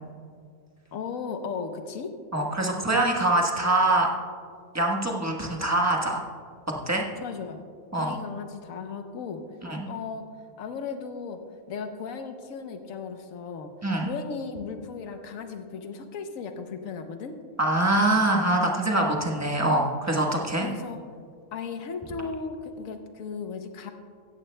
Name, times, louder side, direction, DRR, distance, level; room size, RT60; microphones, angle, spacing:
voice 1, 0.9-2.1 7.2-7.6 8.0-9.4 9.9-10.3 10.6-11.4 11.7-13.7 14.1-17.4 20.5-21.0 21.5-23.9, left 5 dB, 80° left, 7 dB, 1.2 m, -36 dB
voice 2, 2.3-4.1 4.7-6.2 6.9-7.0 7.9-8.2 9.6-9.9 13.8-14.1 17.6-20.7, right 2 dB, 15° right, -1 dB, 1.2 m, -24 dB
16.0 x 13.5 x 2.2 m, 2.2 s
omnidirectional pair, 1.4 m